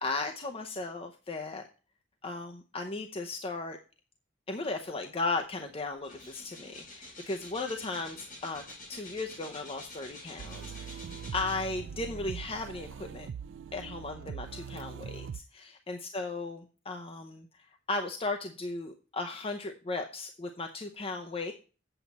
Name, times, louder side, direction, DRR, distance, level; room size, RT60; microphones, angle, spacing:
voice 1, 0.0-1.6 2.2-3.8 4.5-8.6 8.9-11.0 11.3-13.3 13.7-17.5 17.9-21.5, left 3 dB, 30° left, 4 dB, 0.7 m, -36 dB
sound 1, 5.4-5.5 5.8-12.0 12.6-12.7, left 2 dB, 45° left, 4.4 m, -48 dB
sound 2, 10.4-15.4, right 7 dB, 70° right, 0.3 m, -42 dB
8.3 x 8.0 x 4.1 m, 0.35 s
head